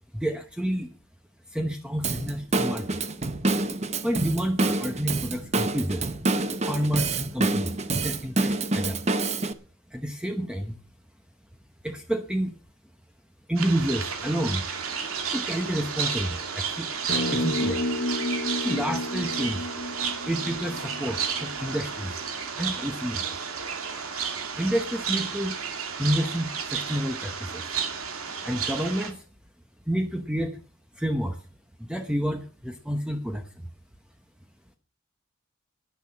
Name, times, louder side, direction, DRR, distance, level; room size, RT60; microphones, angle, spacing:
voice 1, 0.1-1.0 1.5-3.0 4.0-6.0 6.6-9.0 9.9-10.8 11.8-12.5 13.5-14.7 15.3-17.8 18.6-19.7 20.3-22.2 22.5-23.4 24.6-25.5 26.0-27.6 28.4-29.2 29.9-30.6 30.9-31.4 31.8-33.5, equal, 5° right, 5 dB, 0.9 m, -29 dB
Drum kit / Drum, 2.0-9.5, right 2 dB, 30° right, 0.9 m, -27 dB
sound 1, 13.6-29.1, right 6 dB, 90° right, 2.4 m, -32 dB
sound 2, 17.1-21.6, left 1 dB, 45° left, 1.3 m, -31 dB
10.5 x 10.5 x 7.1 m, 0.41 s
head